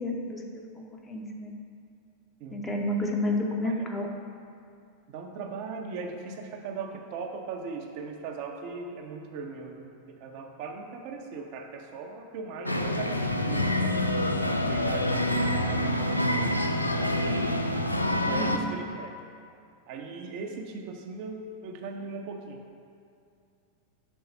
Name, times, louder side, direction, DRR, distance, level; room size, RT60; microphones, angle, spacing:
voice 1, 0.0-1.5 2.5-4.1 18.2-18.6, left 1 dB, 10° left, 0 dB, 0.7 m, -31 dB
voice 2, 5.1-14.0 14.7-16.6 17.0-17.6 18.3-19.1 19.9-22.6, right 4 dB, 45° right, 2 dB, 0.5 m, -38 dB
sound 1, 12.7-18.6, left 1 dB, 85° left, 0.3 m, -26 dB
5.3 x 3.9 x 5.4 m, 2.5 s
figure-of-eight pair, 90°, 0 cm